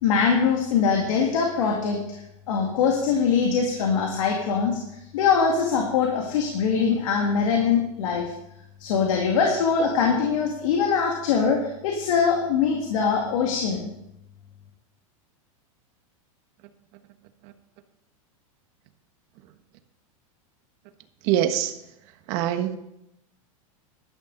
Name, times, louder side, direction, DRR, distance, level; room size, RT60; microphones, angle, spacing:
voice 1, 0.0-2.2 2.5-4.8 5.1-8.3 8.8-13.9, left 6 dB, 70° left, 1 dB, 2.3 m, -22 dB
voice 2, 21.2-21.8 22.3-22.8, right 11 dB, 50° right, 8 dB, 1.3 m, -24 dB
12.5 x 12.0 x 4.0 m, 0.83 s
supercardioid pair, 135°, 18 cm